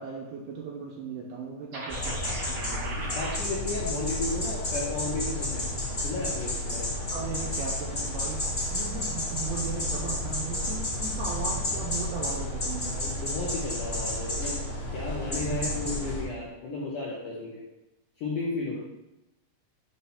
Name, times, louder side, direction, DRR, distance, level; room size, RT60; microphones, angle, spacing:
voice 1, 0.0-3.0 7.1-13.1 15.5-15.7, right 5 dB, 80° right, -2 dB, 2.3 m, -37 dB
sound 1, 1.7-3.4, right 2 dB, 55° right, 1.3 m, -37 dB
sound 2, 1.9-16.2, left 1 dB, 50° left, 0.7 m, -31 dB
voice 2, 3.1-5.6 6.0-6.9 13.0-14.5 14.9-17.5 18.2-18.8, left 2 dB, 80° left, -5 dB, 1.8 m, -33 dB
8.0 x 2.9 x 5.6 m, 0.93 s
omnidirectional pair, 5.1 m